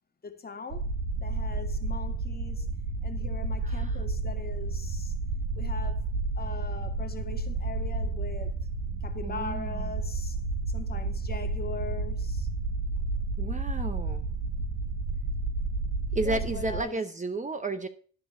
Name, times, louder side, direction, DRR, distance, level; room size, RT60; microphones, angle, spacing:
voice 1, 0.2-0.9 1.2-2.7 3.0-5.1 5.5-6.1 6.4-8.6 9.0-10.4 10.7-12.5 16.2-17.1, left 5 dB, 30° left, 1.9 m, -40 dB
sound 1, 0.7-16.8, right 3 dB, 90° right, 3.6 m, -31 dB
voice 2, 3.6-4.0 9.2-9.8 13.4-14.3 16.1-17.9, right 2 dB, 25° right, 1.0 m, -32 dB
12.5 x 4.6 x 7.0 m
cardioid pair, 90°, 30 cm